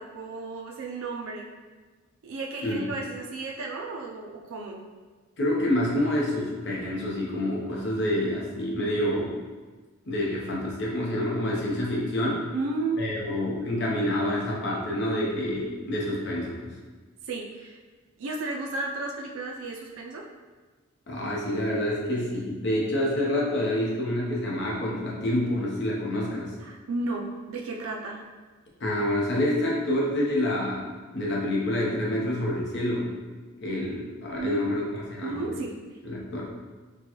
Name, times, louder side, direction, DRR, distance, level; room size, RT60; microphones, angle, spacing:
voice 1, 0.0-1.5 2.2-4.8 12.5-13.0 17.2-17.8 18.2-20.2 26.6-28.2 34.4-34.8 35.2-35.7, right 3 dB, 75° right, -1 dB, 0.4 m, -33 dB
voice 2, 5.4-9.3 10.1-12.4 13.0-16.7 21.1-26.5 28.8-33.1 33.6-35.6 36.0-36.5, left 1 dB, 55° left, -4 dB, 0.7 m, -27 dB
4.5 x 2.2 x 2.9 m, 1.4 s
head